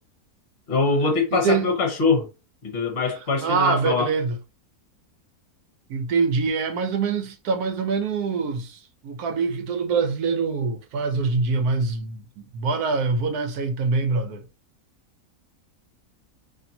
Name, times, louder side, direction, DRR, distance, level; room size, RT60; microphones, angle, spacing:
voice 1, 0.7-2.3 2.6-4.1, left 4 dB, 45° left, 1.2 m, -23 dB
voice 2, 1.3-1.7 3.4-4.4 5.9-14.4, right 4 dB, 80° right, 1.3 m, -24 dB
4.2 x 3.0 x 2.7 m
omnidirectional pair, 1.6 m